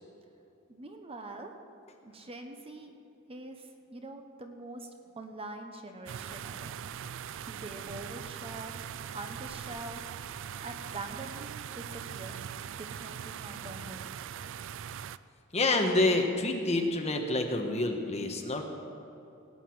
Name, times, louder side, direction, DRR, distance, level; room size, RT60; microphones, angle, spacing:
voice 1, 0.7-1.5 2.0-3.0 3.3-4.9 5.1-6.7 7.4-8.7 9.1-10.0 10.6-12.4 12.8-14.2, right 2 dB, 30° right, 5 dB, 1.0 m, -44 dB
sound 1, 6.1-15.2, right 8 dB, 65° right, 0.4 m, -41 dB
voice 2, 15.5-18.6, left 2 dB, 30° left, 3 dB, 1.4 m, -27 dB
18.0 x 9.1 x 6.2 m, 2.8 s
head